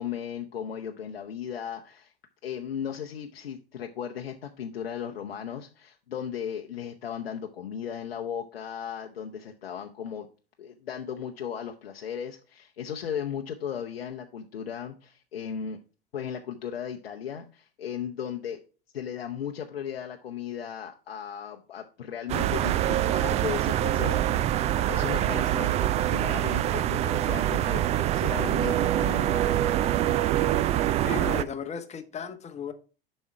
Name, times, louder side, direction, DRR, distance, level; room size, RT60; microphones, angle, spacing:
voice 1, 0.0-2.1 2.4-10.3 10.6-15.8 16.1-18.6 18.9-24.4 24.9-29.6, left 8 dB, 75° left, 3 dB, 0.7 m, -36 dB
sound 1, 22.3-31.4, right 12 dB, 25° right, 0.3 m, -25 dB
voice 2, 31.0-32.7, left 6 dB, 20° left, 8 dB, 1.1 m, -35 dB
7.2 x 5.4 x 4.5 m, 0.35 s
figure-of-eight pair, 85°, 30 cm